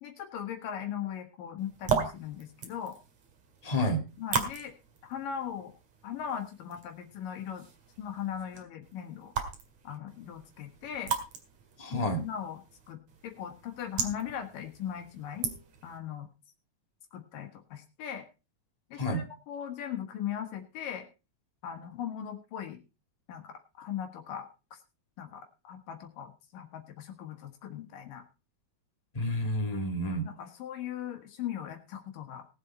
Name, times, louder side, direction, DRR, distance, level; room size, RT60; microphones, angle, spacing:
voice 1, 0.0-3.0 4.2-4.7 5.1-5.7 6.0-7.7 8.0-9.3 9.8-11.1 11.9-15.5 15.8-16.3 17.1-18.3 18.9-21.1 21.6-22.8 23.3-24.8 25.2-28.2 29.8-30.0 30.2-32.5, left 9 dB, 75° left, 5 dB, 3.0 m, -39 dB
sound 1, 1.6-16.0, right 6 dB, 55° right, 3.0 m, -38 dB
voice 2, 3.6-4.0 11.8-12.2 19.0-19.2 29.1-30.3, equal, 25° left, 4 dB, 0.8 m, -29 dB
19.0 x 7.7 x 4.2 m, 0.31 s
omnidirectional pair, 4.0 m